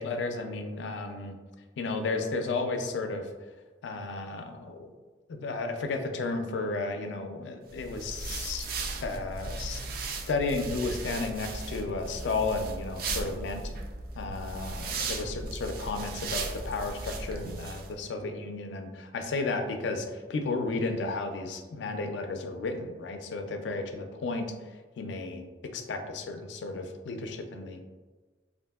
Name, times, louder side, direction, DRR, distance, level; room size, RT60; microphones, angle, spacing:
voice 1, 0.0-1.4 1.8-3.3 3.8-4.9 5.3-8.7 9.0-9.9 10.3-13.6 14.2-24.5 25.0-27.8, left 3 dB, 80° left, 6 dB, 0.4 m, -33 dB
sound 1, 7.7-17.9, right 3 dB, 55° right, 0.3 m, -37 dB
3.4 x 2.5 x 2.3 m, 1.3 s
head